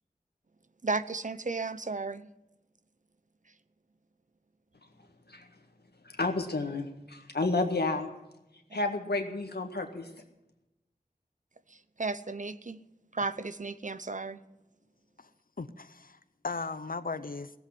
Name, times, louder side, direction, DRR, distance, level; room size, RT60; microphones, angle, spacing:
voice 1, 0.8-2.3 11.7-12.8 13.1-14.4, right 3 dB, 50° right, 13 dB, 0.7 m, -34 dB
voice 2, 6.0-8.1 8.7-10.1, left 3 dB, 85° left, 4 dB, 1.9 m, -31 dB
voice 3, 15.6-17.5, left 4 dB, 60° left, 12 dB, 0.8 m, -37 dB
17.5 x 8.0 x 9.6 m, 0.94 s
wide cardioid pair, 55°, 16 cm